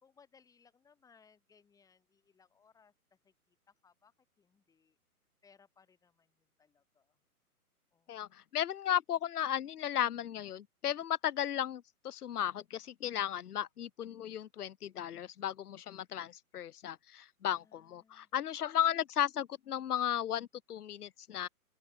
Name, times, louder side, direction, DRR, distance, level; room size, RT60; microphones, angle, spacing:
voice 1, 0.0-5.0 5.4-7.2 7.9-8.4 17.5-18.3, left 6 dB, 10° left, 2.4 m, -67 dB
voice 2, 8.1-21.5, left 10 dB, 75° left, 0.6 m, -35 dB
open air
figure-of-eight pair, 135°, 45 cm